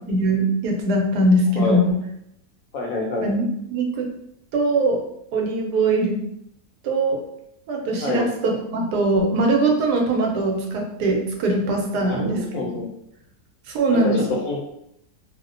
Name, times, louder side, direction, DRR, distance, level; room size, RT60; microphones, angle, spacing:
voice 1, 0.1-2.0 3.2-4.1 4.5-5.0 5.3-6.2 6.8-7.2 7.7-12.7 13.7-14.2, right 2 dB, 90° right, 1 dB, 1.2 m, -21 dB
voice 2, 2.7-3.3 8.0-8.3 12.0-12.9 13.9-14.6, left 3 dB, 70° left, 0 dB, 0.9 m, -26 dB
2.7 x 2.1 x 2.4 m, 0.75 s
omnidirectional pair, 1.7 m